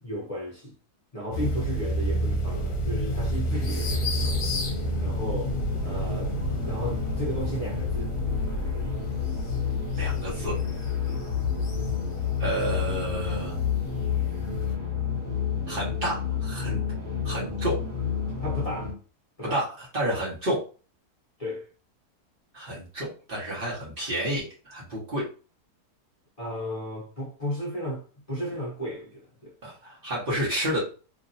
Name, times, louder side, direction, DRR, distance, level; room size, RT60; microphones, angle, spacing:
voice 1, 0.0-0.7 1.1-4.4 5.0-5.5 5.8-6.3 6.6-8.1 11.0-11.2 18.4-18.9 19.4-19.6 20.0-20.2 21.4-21.7 26.4-28.0 28.3-29.6, equal, 35° left, 0.6 m, -34 dB
sound 1, 1.3-14.8, equal, 65° left, 1.0 m, -31 dB
sound 2, 3.5-18.9, left 7 dB, 5° left, 1.3 m, -30 dB
voice 2, 9.9-10.6 12.4-13.5 15.7-16.8 17.2-17.8 19.4-20.6 22.5-25.2 29.6-30.8, right 1 dB, 40° right, 1.2 m, -30 dB
3.1 x 2.6 x 2.7 m
omnidirectional pair, 1.7 m